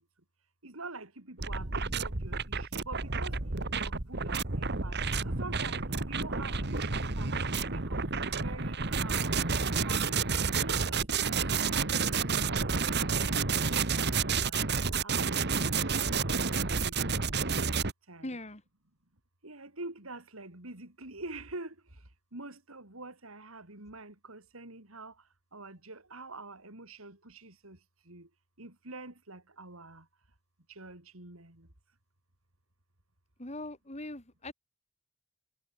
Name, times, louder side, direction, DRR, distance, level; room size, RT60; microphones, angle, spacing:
voice 1, 0.6-3.4 3.7-5.0 5.2-5.8 6.1-9.4 9.8-10.2 10.5-12.7 13.2-14.6 15.0-15.9 16.3-17.1 17.7-18.3 19.4-21.7 22.3-25.1 25.5-27.8 28.1-28.3 28.6-30.0 30.8-31.7, right 2 dB, 75° right, 4.2 m, -46 dB
sound 1, 1.4-17.9, right 4 dB, 50° right, 1.9 m, -30 dB
voice 2, 18.2-18.6 33.4-34.5, left 1 dB, 30° left, 3.8 m, -41 dB
head